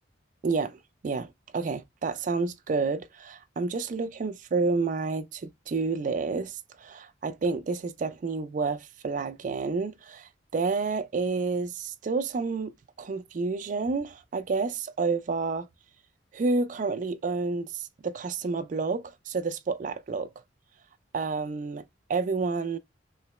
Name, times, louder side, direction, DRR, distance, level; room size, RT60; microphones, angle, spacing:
voice 1, 0.4-12.7 13.0-15.7 16.3-20.3 21.1-21.8 22.1-22.8, right 4 dB, 40° right, 0.3 m, -29 dB
3.2 x 2.9 x 3.0 m
head